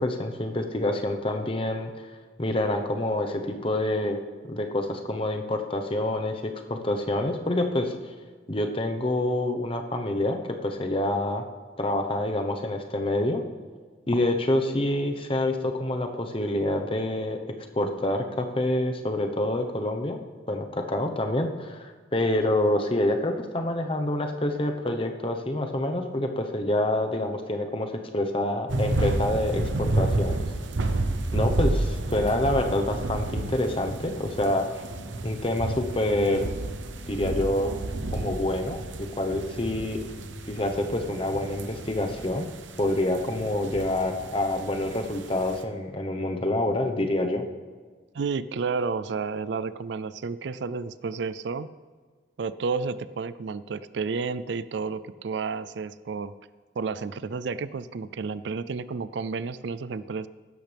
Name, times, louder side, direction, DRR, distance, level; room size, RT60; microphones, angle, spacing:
voice 1, 0.0-1.9 2.4-4.2 4.4-7.9 8.5-10.4 10.6-11.4 11.8-13.4 14.1-17.4 17.7-20.2 20.5-30.4 31.3-34.7 35.2-36.5 37.1-37.7 38.1-38.8 39.2-40.0 40.5-42.5 42.8-47.4, left 1 dB, 30° left, 5 dB, 1.0 m, -27 dB
sound 1, 28.7-45.6, right 2 dB, 85° right, 0.9 m, -31 dB
voice 2, 48.1-51.7 52.4-56.3 56.8-60.3, right 4 dB, 70° right, 16 dB, 0.4 m, -31 dB
16.0 x 12.5 x 3.5 m, 1.5 s
head